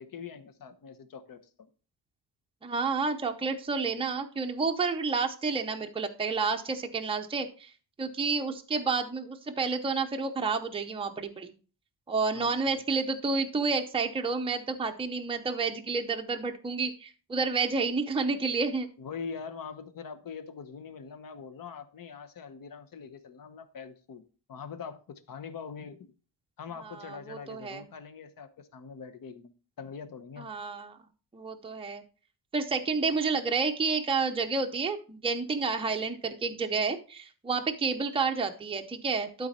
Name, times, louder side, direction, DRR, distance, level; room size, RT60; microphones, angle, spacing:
voice 1, 0.0-1.7 12.3-12.8 19.0-24.2 24.5-26.1 26.6-30.5, left 6 dB, 50° left, 9 dB, 1.0 m, -43 dB
voice 2, 2.6-7.7 8.0-11.5 12.1-18.9 26.8-27.9 30.4-31.0 31.3-32.0 32.5-39.5, right 4 dB, 10° right, 4 dB, 0.6 m, -30 dB
12.0 x 4.1 x 4.2 m, 0.37 s
wide cardioid pair, 155°, 44 cm